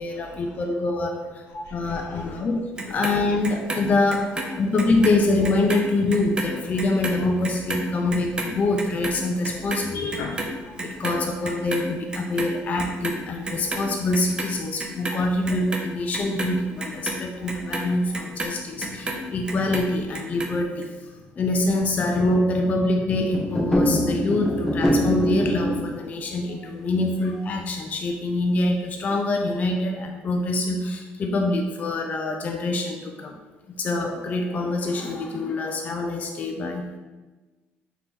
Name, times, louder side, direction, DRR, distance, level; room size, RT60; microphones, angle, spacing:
voice 1, 0.0-1.4 1.7-10.3 10.8-33.4 33.8-36.8, left 2 dB, 35° left, 3 dB, 0.4 m, -25 dB
voice 2, 1.5-2.5 2.9-3.0 9.9-11.1 11.6-11.7 12.8-12.9 17.3-17.5 18.7-19.2, left 3 dB, 80° left, 1 dB, 0.7 m, -38 dB
Clock, 2.8-5.2 5.4-11.9 12.1-13.2 13.4-14.5 14.8-19.2 19.5-20.5 20.8-20.9, right 2 dB, 20° right, 0.5 m, -31 dB
sound 1, 23.3-25.9, equal, 5° left, 0.8 m, -23 dB
4.0 x 2.8 x 3.6 m, 1.2 s
cardioid pair, 115°, 4 cm